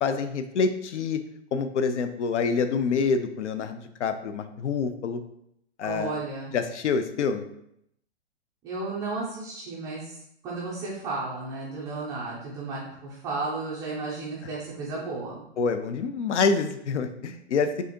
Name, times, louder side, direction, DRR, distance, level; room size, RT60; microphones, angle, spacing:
voice 1, 0.0-1.2 1.5-5.2 5.8-6.2 6.5-7.4 15.6-17.8, left 5 dB, 75° left, 9 dB, 0.5 m, -26 dB
voice 2, 5.8-6.5 8.6-10.1 10.4-15.4, right 3 dB, 10° right, -6 dB, 0.3 m, -33 dB
4.7 x 2.6 x 2.9 m, 0.75 s
hypercardioid pair, 125°, 36 cm